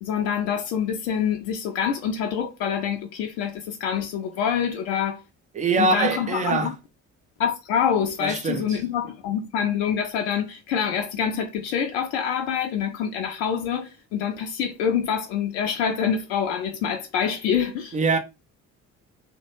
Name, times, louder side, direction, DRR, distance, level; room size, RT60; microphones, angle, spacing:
voice 1, 0.0-5.2 5.7-6.8 7.4-18.0, left 8 dB, 55° left, 0.5 m, -26 dB
voice 2, 5.6-6.7 8.2-8.6 17.9-18.2, right 3 dB, 20° right, 0.3 m, -23 dB
2.2 x 2.1 x 3.0 m
figure-of-eight pair, 45°, 41 cm